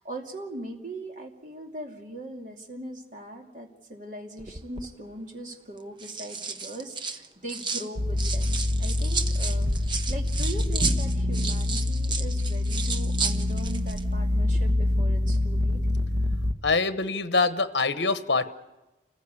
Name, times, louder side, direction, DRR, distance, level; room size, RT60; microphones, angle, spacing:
voice 1, 0.0-9.7 10.1-15.8, right 1 dB, 45° right, 1 dB, 2.7 m, -40 dB
sound 1, 4.4-4.9 5.8-7.9 8.2-14.0 14.3-14.6, right 5 dB, 25° right, 0.9 m, -33 dB
sound 2, 8.0-16.5, left 1 dB, 70° right, 1.6 m, -25 dB
voice 2, 16.6-18.5, left 4 dB, 75° left, 11 dB, 1.0 m, -24 dB
28.0 x 15.0 x 8.4 m, 1.1 s
head